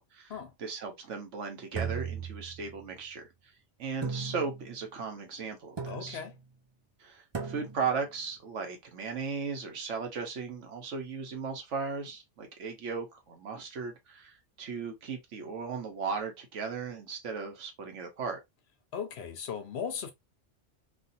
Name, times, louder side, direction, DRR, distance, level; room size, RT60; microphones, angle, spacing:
voice 1, 0.0-0.3 0.6-3.3 3.8-6.2 7.0-18.4, right 5 dB, 90° right, 1.3 m, -36 dB
sound 1, 1.7-2.9 4.0-4.8 5.8-6.4 7.3-8.0, right 6 dB, 40° right, 0.4 m, -37 dB
voice 2, 5.9-6.3 18.9-20.1, left 7 dB, 65° left, 0.9 m, -37 dB
3.2 x 2.4 x 2.6 m
omnidirectional pair, 1.2 m